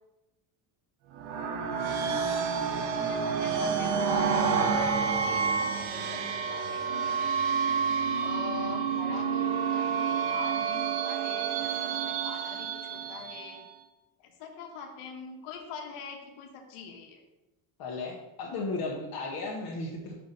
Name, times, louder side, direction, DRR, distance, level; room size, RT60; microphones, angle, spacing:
sound 1, 1.1-13.7, right 6 dB, 70° right, 0.9 m, -29 dB
voice 1, 2.8-4.5 5.2-7.2 8.2-13.6 14.2-17.2, left 6 dB, 80° left, 2 dB, 1.4 m, -44 dB
voice 2, 17.8-20.1, left 3 dB, 45° left, -3 dB, 1.1 m, -35 dB
5.7 x 4.1 x 5.2 m, 0.97 s
cardioid pair, 175°, 49 cm